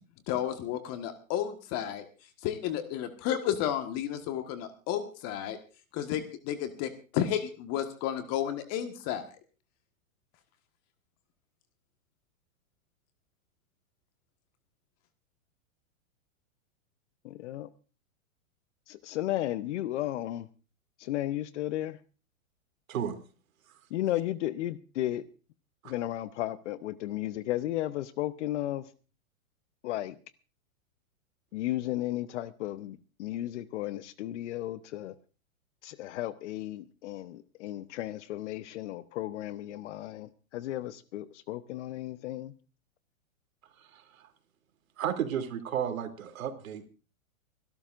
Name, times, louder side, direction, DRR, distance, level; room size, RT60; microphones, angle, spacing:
voice 1, 0.3-2.0 2.4-5.6 5.9-9.2, left 10 dB, 40° left, 8 dB, 1.6 m, -32 dB
voice 2, 17.2-17.7 18.9-20.5 21.0-22.0 23.9-25.2 25.8-28.9 29.8-30.2 31.5-35.1 35.8-42.5, left 14 dB, 60° left, 14 dB, 1.0 m, -34 dB
voice 3, 43.8-44.2 45.0-46.9, right 9 dB, 75° right, 6 dB, 3.1 m, -33 dB
29.0 x 12.5 x 2.6 m, 0.34 s
hypercardioid pair, 125°, 41 cm